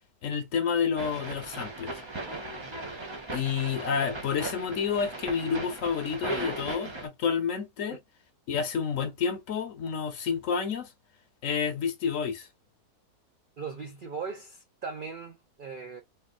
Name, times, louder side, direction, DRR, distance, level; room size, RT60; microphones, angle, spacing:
voice 1, 0.2-2.0 3.3-8.0 8.5-10.9 11.4-12.5, left 6 dB, 60° left, 1.1 m, -29 dB
sound 1, 1.0-7.1, right 2 dB, 35° right, 0.5 m, -37 dB
voice 2, 13.6-16.0, right 5 dB, 90° right, 0.4 m, -39 dB
3.8 x 2.5 x 2.4 m
omnidirectional pair, 1.7 m